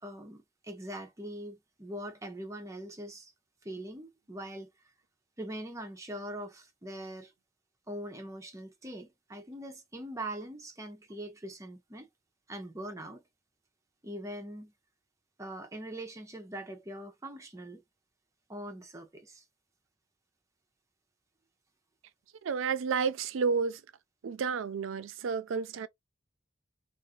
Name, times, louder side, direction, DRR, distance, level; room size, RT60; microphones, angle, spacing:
voice 1, 0.0-3.3 3.6-4.7 5.4-7.3 7.9-12.1 12.5-13.2 14.0-14.7 15.4-17.8 18.5-19.4, right 1 dB, 15° right, 0.6 m, -42 dB
voice 2, 22.4-23.8 24.2-25.9, right 5 dB, 90° right, 0.4 m, -31 dB
2.4 x 2.4 x 3.6 m
head